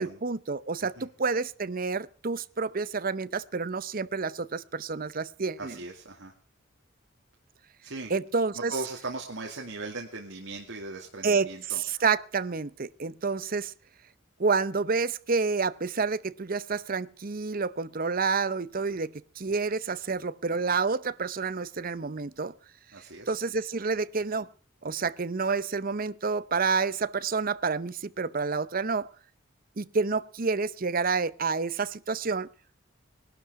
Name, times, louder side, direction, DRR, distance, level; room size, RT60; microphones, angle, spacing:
voice 1, 0.0-5.8 8.1-8.7 11.2-13.7 14.4-22.5 23.3-24.5 24.8-29.1 29.8-32.5, right 4 dB, 45° right, 0.7 m, -29 dB
voice 2, 5.6-6.3 7.8-8.1 8.7-11.8 22.9-23.3, right 3 dB, 70° right, 2.4 m, -38 dB
20.0 x 12.0 x 4.8 m
head